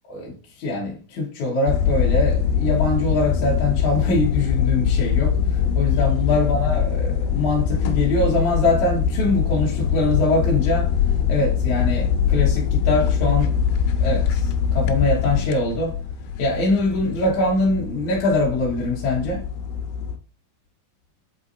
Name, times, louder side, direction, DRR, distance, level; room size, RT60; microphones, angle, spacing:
voice 1, 0.1-10.9 11.3-13.6 14.0-16.0 16.4-19.4, left 2 dB, 60° left, 2.3 m, -23 dB
sound 1, 1.7-20.2, left 7 dB, 90° left, 2.9 m, -23 dB
8.2 x 4.5 x 2.7 m
omnidirectional pair, 4.6 m